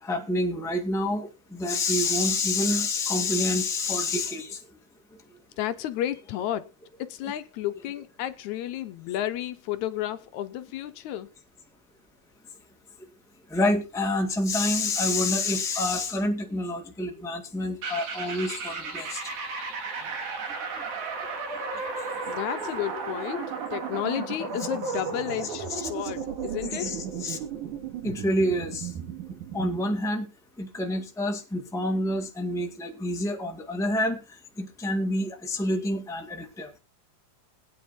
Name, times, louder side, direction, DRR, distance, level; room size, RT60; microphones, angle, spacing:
voice 1, 0.0-4.6 13.5-19.2 20.7-20.8 25.7-25.8 26.8-27.4 28.0-28.9 29.5-30.3 30.6-34.2 34.6-36.7, left 2 dB, ahead, 1.4 m, -27 dB
voice 2, 5.6-6.7 7.0-11.3 22.3-27.0, left 12 dB, 75° left, 2.0 m, -32 dB
sound 1, 17.8-29.9, right 5 dB, 85° right, 3.7 m, -34 dB
21.0 x 9.5 x 2.8 m
omnidirectional pair, 3.4 m